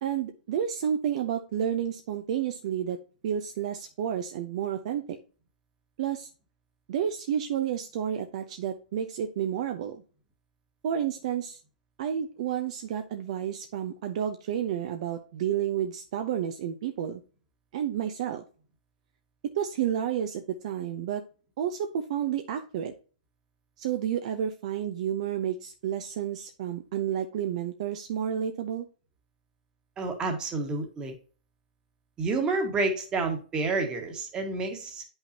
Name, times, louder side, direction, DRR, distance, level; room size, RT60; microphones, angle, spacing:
voice 1, 0.0-3.0 3.2-5.2 6.0-6.3 6.9-10.0 10.8-11.6 12.0-17.2 17.7-18.4 19.5-21.2 21.6-22.9 23.8-28.9, right 9 dB, 45° right, 7 dB, 0.7 m, -30 dB
voice 2, 30.0-31.1 32.2-35.0, right 3 dB, 15° right, 3 dB, 1.6 m, -29 dB
8.9 x 5.6 x 2.8 m, 0.38 s
hypercardioid pair, 150°, 5 cm